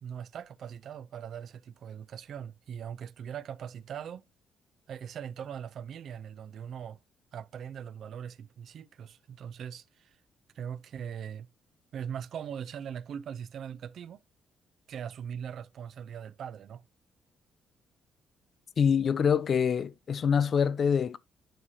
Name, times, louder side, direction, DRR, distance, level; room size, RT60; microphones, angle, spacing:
voice 1, 0.0-4.2 4.9-7.0 7.3-10.2 10.5-11.5 11.9-14.2 14.9-16.8, right 8 dB, 65° right, 0.4 m, -40 dB
voice 2, 18.8-21.2, left 7 dB, 50° left, 0.5 m, -25 dB
10.0 x 4.8 x 2.7 m
cardioid pair, 90°, 0 cm